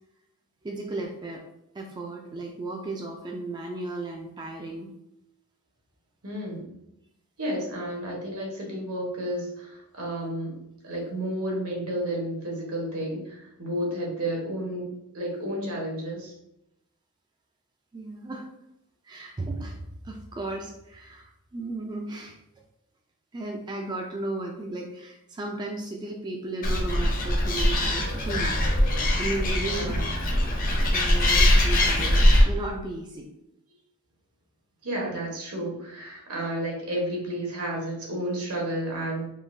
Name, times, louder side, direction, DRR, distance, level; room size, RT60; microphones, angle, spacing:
voice 1, 0.6-1.4 1.7-4.9 17.9-18.4 19.0-22.4 23.3-30.0 30.8-33.3, right 2 dB, 20° right, 0 dB, 0.3 m, -35 dB
voice 2, 6.2-6.7 7.4-16.3 29.7-30.1 34.8-39.3, right 1 dB, 75° right, -1 dB, 1.1 m, -32 dB
Animal, 26.6-32.4, left 1 dB, 40° left, 0.6 m, -22 dB
3.7 x 2.6 x 2.6 m, 0.84 s
head